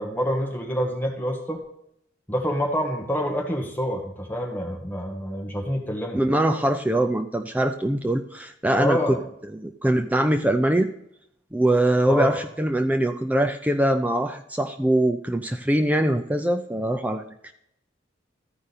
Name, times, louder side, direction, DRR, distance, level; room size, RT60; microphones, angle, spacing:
voice 1, 0.0-1.6 2.3-6.2 8.8-9.2 12.1-12.3, equal, 10° left, 1 dB, 1.3 m, -27 dB
voice 2, 6.1-9.0 9.5-10.9 11.5-17.5, right 1 dB, 10° right, 6 dB, 0.4 m, -23 dB
14.0 x 5.1 x 4.1 m, 0.76 s
head